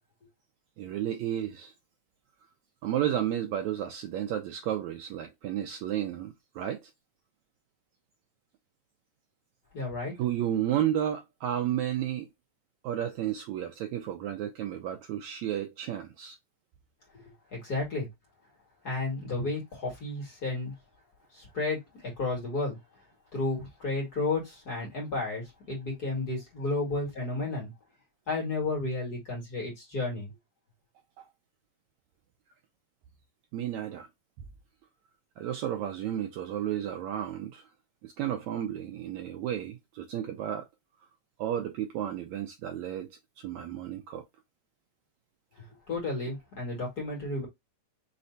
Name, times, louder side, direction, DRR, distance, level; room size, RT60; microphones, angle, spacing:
voice 1, 0.8-1.7 2.8-6.9 10.2-12.3 12.8-16.4 31.2-31.3 33.5-34.1 35.4-37.6 38.0-40.6 41.4-44.2, right 11 dB, 90° right, 1.6 m, -32 dB
voice 2, 9.7-10.1 17.1-17.2 17.5-18.1 18.8-20.7 21.4-22.8 23.3-27.7 28.3-30.3 45.9-47.5, left 2 dB, 35° left, 2.1 m, -32 dB
5.4 x 3.3 x 2.6 m
omnidirectional pair, 4.0 m